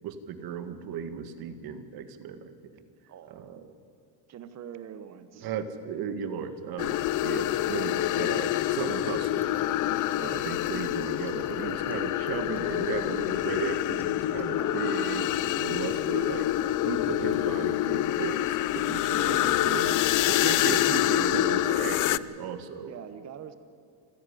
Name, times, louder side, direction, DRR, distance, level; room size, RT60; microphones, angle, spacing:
voice 1, 0.0-2.4 3.3-3.6 5.4-9.5 10.2-20.0 20.2-22.9, right 7 dB, 55° right, 10 dB, 1.8 m, -35 dB
voice 2, 3.1-3.4 4.3-5.5 14.5-14.8 22.9-23.6, right 9 dB, 40° right, 11 dB, 1.0 m, -43 dB
sound 1, 6.4-22.2, left 1 dB, 5° left, 2.2 m, -54 dB
sound 2, 6.8-22.2, left 14 dB, 50° left, 0.5 m, -27 dB
27.5 x 11.0 x 9.9 m, 2.4 s
cardioid pair, 145°, 42 cm